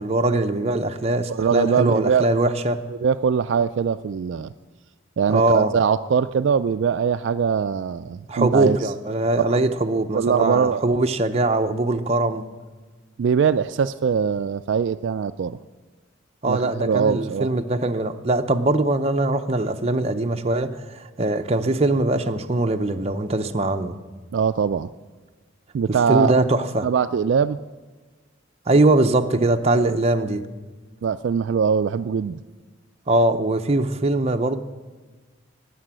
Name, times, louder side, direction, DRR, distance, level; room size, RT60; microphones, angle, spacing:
voice 1, 0.0-2.8 5.3-5.7 8.3-12.4 16.4-24.0 26.1-26.9 28.7-30.4 33.1-34.6, right 2 dB, 30° right, 0.7 m, -21 dB
voice 2, 1.3-2.4 2.9-4.5 5.2-8.9 9.5-9.6 10.1-10.8 13.2-15.6 16.5-17.5 24.3-24.9 25.7-26.3 26.8-27.6 29.4-30.0 31.0-32.4, right 6 dB, 65° right, 0.3 m, -22 dB
13.0 x 9.7 x 7.5 m
head